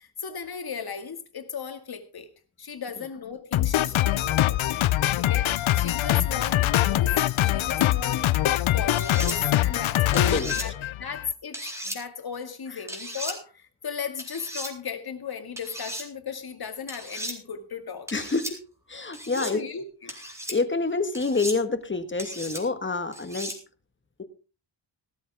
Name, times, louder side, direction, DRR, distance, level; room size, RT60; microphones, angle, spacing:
voice 1, 0.0-2.3 2.6-4.6 5.2-8.3 8.7-10.3 10.6-10.7 11.0-18.1 19.3-20.1, left 6 dB, 50° left, 2.2 m, -36 dB
Drum kit, 3.5-11.3, left 14 dB, 85° left, 0.7 m, -23 dB
sound 1, 8.9-9.4 10.1-10.7 11.5-12.0 12.9-13.4 14.2-14.7 15.6-16.1 16.9-17.4 18.1-18.5 19.1-19.5 20.1-20.6 21.1-21.6 22.2-22.6 23.1-23.6, equal, 5° right, 3.9 m, -36 dB
voice 2, 10.1-10.5 18.1-18.6 18.9-19.6 20.5-23.5 24.2-24.3, left 3 dB, 25° left, 1.6 m, -27 dB
17.0 x 13.0 x 3.5 m
wide cardioid pair, 130°, 46 cm